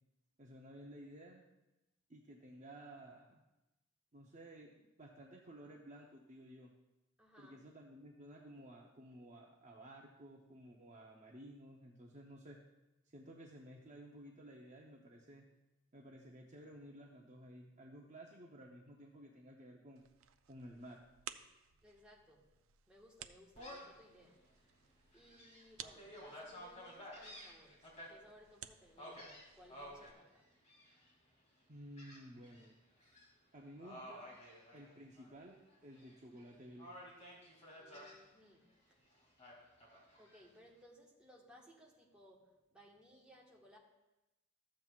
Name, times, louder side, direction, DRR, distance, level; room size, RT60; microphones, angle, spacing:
voice 1, 0.4-1.4 2.1-3.4 4.1-6.7 7.4-12.6 13.1-15.5 15.9-20.0 20.5-21.0 31.7-32.8 33.5-34.3 34.7-36.9, right 1 dB, 35° right, -1 dB, 0.7 m, -54 dB
voice 2, 7.2-7.6 21.8-22.5 22.9-24.8 25.1-30.5 37.7-39.0 40.2-43.8, equal, 5° right, -4 dB, 1.4 m, -62 dB
sound 1, 20.0-30.1, right 9 dB, 70° right, 0.4 m, -57 dB
Gull seagull, 23.5-24.0 24.5-24.6 25.1-28.1 29.0-30.1 30.6-31.1 32.0-32.7 33.0-33.2 33.8-35.3 35.7-36.4 36.8-38.2 39.4-40.4, equal, 30° left, 2.6 m, -53 dB
14.0 x 7.6 x 2.4 m, 0.98 s
head